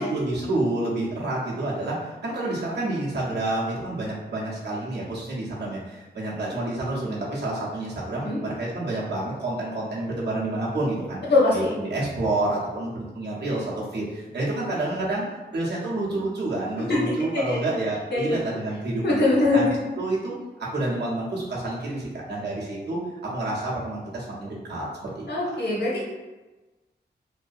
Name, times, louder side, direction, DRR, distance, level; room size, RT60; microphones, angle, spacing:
voice 1, 0.0-11.2 11.5-19.7 20.0-20.3 20.6-24.9 25.1-25.2, right 2 dB, 70° right, -6 dB, 0.8 m, -29 dB
voice 2, 11.2-11.8 16.8-17.6 18.1-18.4 19.0-19.7 25.3-26.1, left 2 dB, 70° left, -5 dB, 0.9 m, -22 dB
2.6 x 2.1 x 2.4 m, 1.1 s
wide cardioid pair, 80°, 18 cm